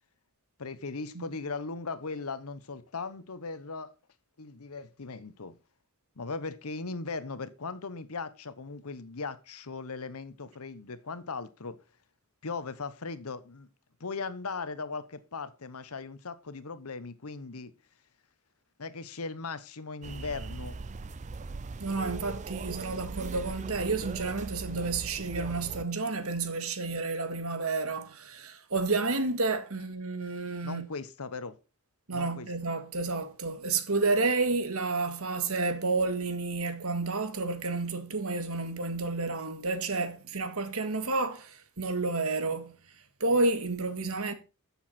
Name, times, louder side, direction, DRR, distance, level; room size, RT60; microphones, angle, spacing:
voice 1, 0.6-3.9 4.4-5.5 6.2-11.8 12.4-13.7 14.0-17.7 18.8-20.8 30.6-31.6 32.1-32.5, left 4 dB, 80° left, 1.0 m, -38 dB
sound 1, 20.0-25.9, right 3 dB, 35° right, 0.5 m, -40 dB
voice 2, 21.8-30.8 32.1-42.7 43.2-44.3, right 3 dB, 75° right, 1.9 m, -30 dB
13.5 x 7.1 x 4.3 m
head